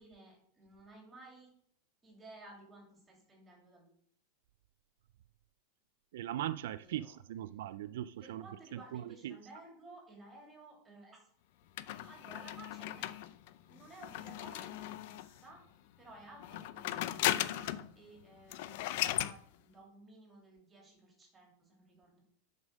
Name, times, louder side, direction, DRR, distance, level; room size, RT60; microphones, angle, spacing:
voice 1, 0.0-1.5 2.0-3.9 6.7-7.2 8.2-11.3 12.0-13.1 13.7-22.2, right 2 dB, 10° right, 2.7 m, -55 dB
voice 2, 6.1-8.4 8.7-9.4, right 12 dB, 65° right, 0.3 m, -40 dB
sound 1, 11.8-15.4 16.4-17.9 18.2-18.3 18.5-19.4, left 14 dB, 45° left, 0.5 m, -37 dB
9.6 x 5.4 x 6.3 m
supercardioid pair, 180°, 0 cm